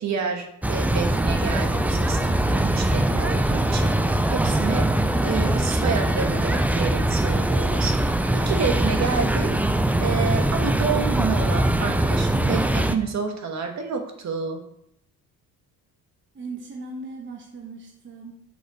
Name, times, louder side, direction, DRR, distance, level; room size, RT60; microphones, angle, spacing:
voice 1, 0.0-3.9 4.3-4.9 5.2-9.5 10.0-14.6, right 5 dB, 45° right, 4 dB, 1.5 m, -29 dB
sound 1, 0.6-12.9, right 1 dB, 5° right, 0.4 m, -22 dB
voice 2, 16.3-18.3, right 3 dB, 30° right, 0 dB, 1.1 m, -38 dB
6.8 x 4.9 x 5.0 m, 0.71 s
cardioid pair, 95°, 37 cm